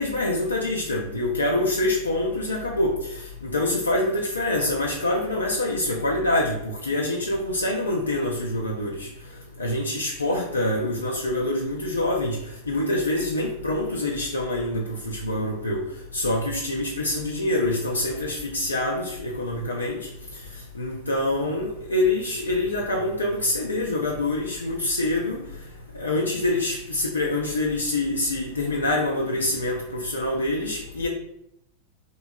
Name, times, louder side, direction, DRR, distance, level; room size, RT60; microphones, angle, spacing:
voice 1, 0.0-3.1 3.4-9.1 9.6-12.4 12.7-15.8 16.1-20.0 20.8-25.4 25.9-31.1, left 1 dB, 75° left, -1 dB, 0.3 m, -25 dB
2.7 x 2.6 x 2.2 m, 0.77 s
figure-of-eight pair, 90°, 0 cm